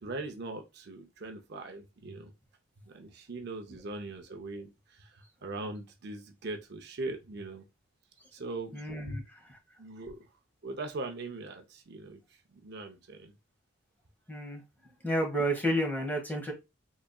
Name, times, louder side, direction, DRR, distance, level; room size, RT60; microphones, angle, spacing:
voice 1, 0.0-2.3 2.9-4.7 5.0-7.6 8.3-9.2 9.8-10.3 10.6-12.2 12.5-13.3, right 2 dB, 55° right, 0.6 m, -40 dB
voice 2, 8.7-9.6 14.3-14.6 15.0-16.5, equal, 10° left, 1.3 m, -31 dB
3.9 x 3.5 x 2.3 m
head